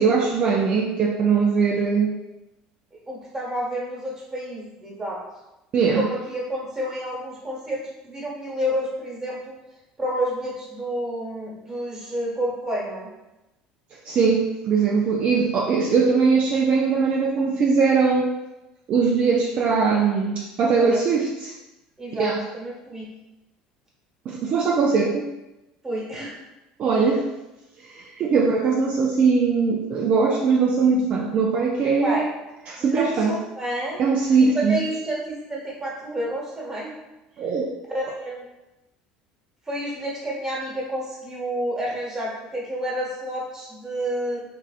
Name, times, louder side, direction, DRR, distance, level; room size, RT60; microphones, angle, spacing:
voice 1, 0.0-2.1 5.7-6.1 13.9-18.3 18.9-21.5 22.1-22.4 24.3-25.2 26.8-27.3 27.8-32.3 32.7-33.4 34.0-34.8 37.4-37.7, right 5 dB, 45° right, -1 dB, 0.3 m, -21 dB
voice 2, 3.1-5.2 5.8-9.6 10.0-13.1 20.8-21.0 22.0-23.1 25.8-26.4 32.0-32.2 32.8-34.0 34.4-36.9 37.9-38.5 39.6-44.4, equal, 20° right, -5 dB, 1.3 m, -29 dB
3.3 x 2.5 x 2.4 m, 0.98 s
supercardioid pair, 100°, 3 cm